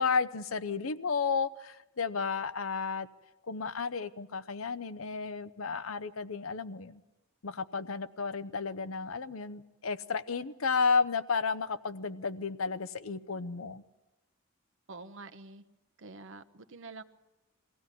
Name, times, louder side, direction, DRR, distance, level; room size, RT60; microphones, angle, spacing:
voice 1, 0.0-3.1 3.5-7.0 7.4-13.8, left 5 dB, 75° left, 13 dB, 0.8 m, -32 dB
voice 2, 14.9-15.6 16.0-17.0, right 3 dB, 65° right, 9 dB, 1.0 m, -47 dB
23.0 x 16.5 x 8.4 m, 1.0 s
head